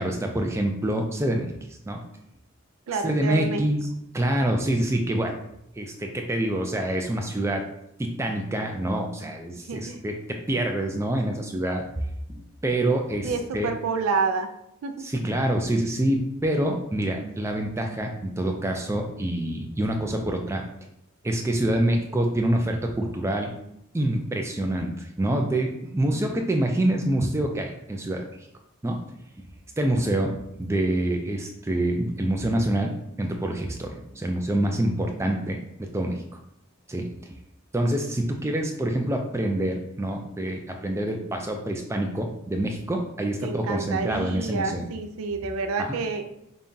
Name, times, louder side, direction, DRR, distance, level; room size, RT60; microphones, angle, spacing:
voice 1, 0.0-1.5 1.8-2.0 3.0-3.9 4.1-5.3 5.8-7.6 8.0-11.8 12.3-13.7 15.0-20.6 21.2-23.5 23.9-28.2 28.8-29.0 29.8-36.2 36.9-37.1 37.7-44.9 45.8-45.9, right 1 dB, 15° right, 3 dB, 0.3 m, -26 dB
voice 2, 2.9-3.6 9.7-10.0 13.2-14.5 14.8-15.1 43.4-46.3, right 4 dB, 80° right, 7 dB, 0.4 m, -28 dB
5.4 x 2.3 x 2.6 m, 0.79 s
head